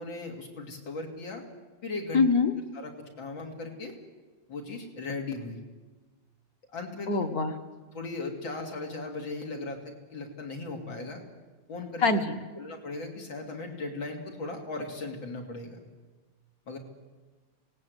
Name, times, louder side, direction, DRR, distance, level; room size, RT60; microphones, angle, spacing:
voice 1, 0.0-1.4 1.8-2.2 2.7-3.9 4.5-5.6 6.7-7.3 7.9-11.2 11.7-12.2 12.6-15.8 16.7-16.8, left 3 dB, 80° left, 2 dB, 3.6 m, -37 dB
voice 2, 2.1-2.5 7.1-7.5 12.0-12.4, left 4 dB, 50° left, 7 dB, 1.8 m, -24 dB
26.0 x 19.0 x 8.0 m, 1.3 s
omnidirectional pair, 2.1 m